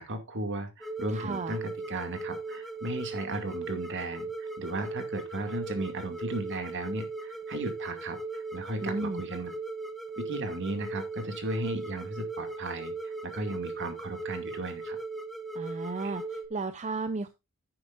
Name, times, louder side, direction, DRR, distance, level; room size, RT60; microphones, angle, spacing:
voice 1, 0.0-9.5 10.2-15.0, right 2 dB, 55° right, 6 dB, 2.3 m, -35 dB
sound 1, 0.8-16.5, right 3 dB, ahead, 1.1 m, -38 dB
voice 2, 1.1-1.6 8.8-9.2 15.5-17.3, right 3 dB, 30° right, 10 dB, 0.6 m, -34 dB
10.5 x 9.8 x 2.5 m, 0.24 s
head